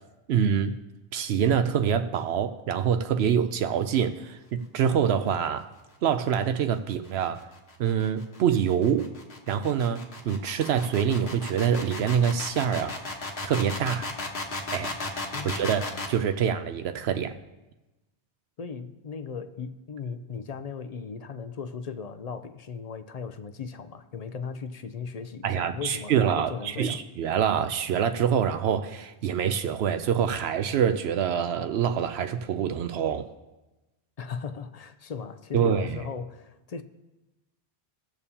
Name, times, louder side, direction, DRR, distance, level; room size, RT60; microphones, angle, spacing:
voice 1, 0.3-0.8 1.1-5.7 6.0-7.5 7.8-9.1 9.5-12.9 13.4-14.1 14.7-14.9 15.4-17.3 25.4-33.3 35.5-36.0, right 8 dB, 80° right, 0.8 m, -25 dB
sound 1, 6.9-16.2, left 2 dB, 75° left, 1.5 m, -35 dB
voice 2, 18.6-27.0 34.2-36.8, left 5 dB, 50° left, 0.5 m, -37 dB
18.0 x 7.0 x 2.8 m
omnidirectional pair, 1.1 m